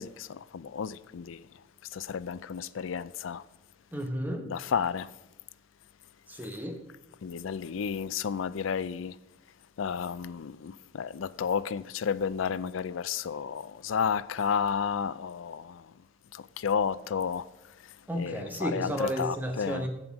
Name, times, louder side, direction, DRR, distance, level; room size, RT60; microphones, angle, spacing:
voice 1, 0.0-1.4 1.9-3.4 4.4-5.1 7.2-9.2 9.8-15.9 16.3-17.5 17.8-19.9, left 7 dB, 85° left, 0.4 m, -32 dB
voice 2, 3.9-4.5 6.3-6.8 18.1-19.9, equal, 10° right, 0.9 m, -32 dB
7.9 x 7.6 x 5.9 m
head